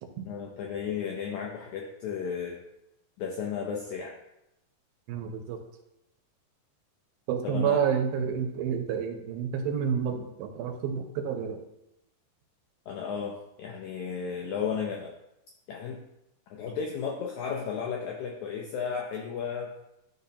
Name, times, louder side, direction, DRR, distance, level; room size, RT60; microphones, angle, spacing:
voice 1, 0.3-2.6 3.2-4.2 7.4-7.8 12.9-15.1 15.7-16.0 16.5-19.7, left 6 dB, 80° left, 1 dB, 1.7 m, -34 dB
voice 2, 5.1-5.6 7.3-11.6, right 7 dB, 90° right, 5 dB, 2.7 m, -29 dB
11.5 x 4.1 x 2.8 m, 0.87 s
omnidirectional pair, 4.1 m